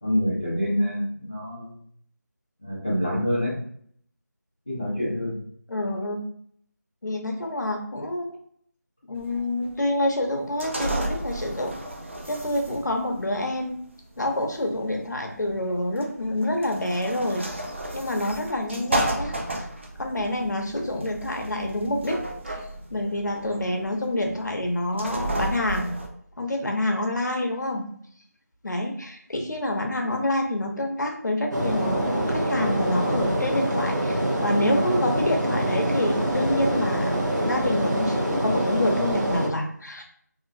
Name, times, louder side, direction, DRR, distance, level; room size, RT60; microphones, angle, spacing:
voice 1, 0.0-1.8 2.6-3.6 4.7-5.4, equal, 10° left, -15 dB, 0.5 m, -26 dB
voice 2, 5.7-6.2 7.0-8.4 9.1-11.7 12.3-13.8 14.2-17.5 17.9-19.7 20.0-22.2 22.5-22.6 22.9-26.0 26.4-27.9 28.6-40.0, left 1 dB, 75° left, 3 dB, 0.6 m, -27 dB
sound 1, 9.2-26.1, right 1 dB, 40° right, 0.4 m, -33 dB
sound 2, 31.5-39.5, right 1 dB, 85° right, 0.9 m, -25 dB
2.8 x 2.4 x 2.5 m, 0.62 s
figure-of-eight pair, 170°, 10 cm